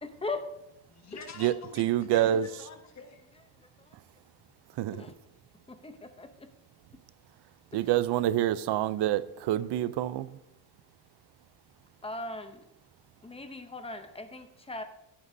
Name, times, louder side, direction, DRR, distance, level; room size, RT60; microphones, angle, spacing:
voice 1, 0.0-0.5 4.9-5.1 5.7-6.3 7.7-7.9 12.0-12.6 13.2-14.8, left 2 dB, 15° left, 0.7 m, -38 dB
voice 2, 0.9-3.2, left 5 dB, 45° left, 1.4 m, -47 dB
voice 3, 1.4-2.5 4.8-5.1 7.7-10.4, right 12 dB, 90° right, 0.6 m, -27 dB
15.5 x 9.7 x 2.7 m
cardioid pair, 170°, 40 cm